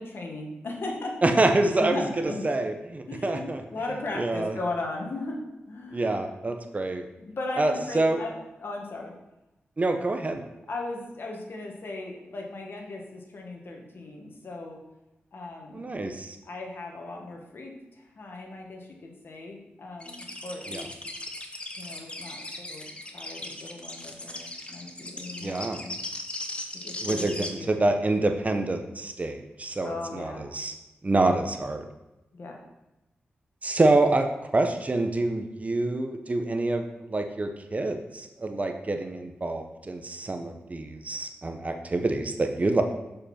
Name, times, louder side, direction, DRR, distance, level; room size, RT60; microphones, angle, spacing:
voice 1, 0.0-1.3 1.8-2.4 3.1-6.2 7.2-8.3 8.6-9.1 10.7-14.8 15.3-16.0 16.4-20.9 21.8-22.9 23.1-26.0 26.8-27.8 29.8-30.5 32.3-32.6, left 2 dB, 65° left, 1 dB, 1.6 m, -37 dB
voice 2, 1.2-2.0 2.4-3.6 4.2-4.6 5.9-7.1 7.6-8.2 9.8-10.4 15.7-16.4 20.7-20.8 25.4-25.8 27.0-30.7 31.0-31.9 33.6-34.3 34.5-42.8, right 2 dB, 35° right, 6 dB, 0.9 m, -26 dB
sound 1, 20.0-27.5, left 1 dB, 25° left, 1.1 m, -37 dB
6.7 x 5.4 x 4.3 m, 0.96 s
cardioid pair, 50°, 4 cm